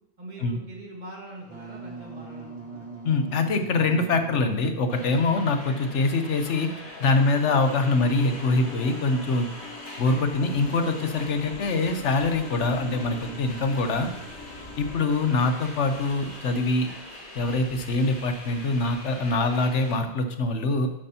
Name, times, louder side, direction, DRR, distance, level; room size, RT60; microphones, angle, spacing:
voice 1, 0.2-2.9, right 1 dB, 40° right, -2 dB, 1.9 m, -43 dB
Wind instrument woodwind instrument, 1.4-6.0, right 4 dB, 55° right, 2.0 m, -42 dB
voice 2, 3.0-6.7 7.0-9.5 10.0-14.1 14.8-16.9 17.3-20.9, left 3 dB, 85° left, 7 dB, 1.2 m, -24 dB
sound 1, 4.9-20.0, left 1 dB, 45° left, 1.8 m, -43 dB
sound 2, 7.1-17.9, left 3 dB, 65° left, 1.5 m, -44 dB
11.0 x 8.5 x 2.9 m, 0.86 s
omnidirectional pair, 1.2 m